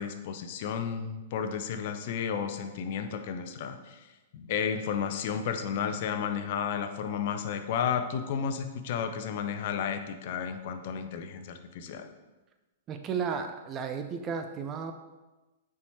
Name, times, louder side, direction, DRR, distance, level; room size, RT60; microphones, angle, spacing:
voice 1, 0.0-4.1 4.3-12.1, left 7 dB, 50° left, 7 dB, 0.7 m, -32 dB
voice 2, 12.9-14.9, right 6 dB, 25° right, 6 dB, 0.5 m, -33 dB
6.9 x 4.8 x 4.3 m, 1.1 s
figure-of-eight pair, 105°, 0 cm